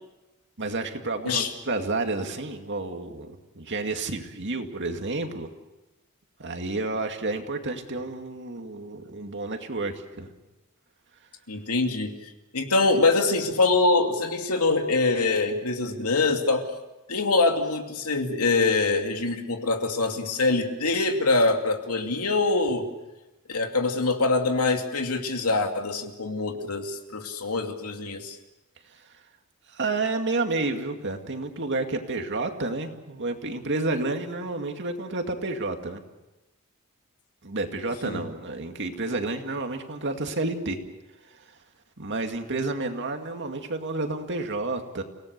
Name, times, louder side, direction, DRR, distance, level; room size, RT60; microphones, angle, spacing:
voice 1, 0.6-5.5 6.4-10.3 28.9-29.0 29.7-36.0 37.4-40.8 41.3-41.5 42.0-45.0, right 2 dB, 55° right, 5 dB, 2.3 m, -30 dB
voice 2, 11.5-12.1 12.5-16.7 17.1-22.9 23.5-28.4 38.0-38.2, left 3 dB, 85° left, 4 dB, 2.6 m, -24 dB
29.5 x 18.0 x 6.8 m, 1.0 s
head